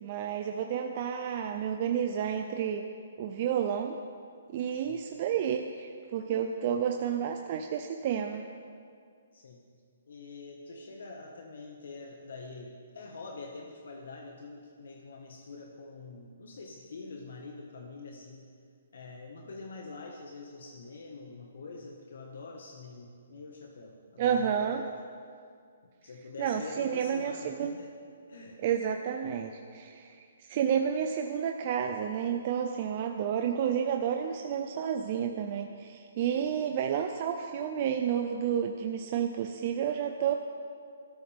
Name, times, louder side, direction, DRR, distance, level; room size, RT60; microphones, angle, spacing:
voice 1, 0.0-2.8 3.2-4.0 4.5-8.5 24.2-24.8 26.4-27.8 28.6-30.2 30.5-40.3, right 8 dB, 30° right, 4 dB, 0.6 m, -30 dB
voice 2, 4.7-5.0 9.3-9.6 10.1-18.5 18.9-24.9 26.0-27.9 28.3-28.6 36.6-36.8, left 3 dB, 65° left, 0 dB, 1.7 m, -45 dB
22.0 x 13.5 x 3.7 m, 2.2 s
hypercardioid pair, 175°, 0 cm